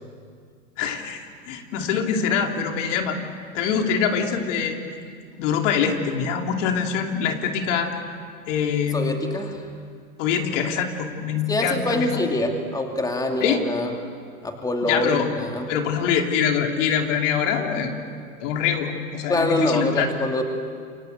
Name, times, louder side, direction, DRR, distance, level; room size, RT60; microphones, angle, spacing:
voice 1, 0.8-3.2 3.5-4.8 5.4-7.9 8.5-9.3 10.2-12.1 13.4-13.6 14.8-15.3 15.7-17.9 18.4-20.1, left 7 dB, 60° left, 3 dB, 3.1 m, -24 dB
voice 2, 8.9-9.6 11.5-13.9 14.4-15.7 19.3-20.4, left 1 dB, 10° left, 3 dB, 2.6 m, -25 dB
28.5 x 23.5 x 7.9 m, 2.1 s
hypercardioid pair, 115°, 42 cm